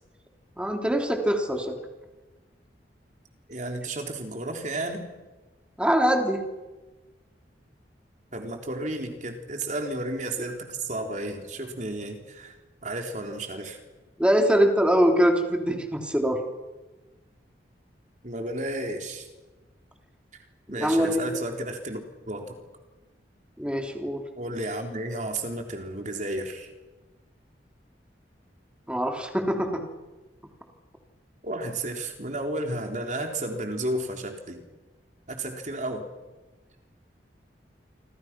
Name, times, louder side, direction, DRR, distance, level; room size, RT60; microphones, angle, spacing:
voice 1, 0.6-1.7 5.8-6.4 14.2-16.4 20.8-21.3 23.6-24.2 28.9-29.8, equal, 5° right, 3 dB, 3.0 m, -23 dB
voice 2, 3.5-5.1 8.3-12.6 12.8-13.8 18.2-19.3 20.7-22.0 22.3-22.6 24.4-26.7 31.4-34.6 35.3-36.1, right 1 dB, 45° right, 4 dB, 3.6 m, -32 dB
27.5 x 25.5 x 6.1 m, 1.2 s
head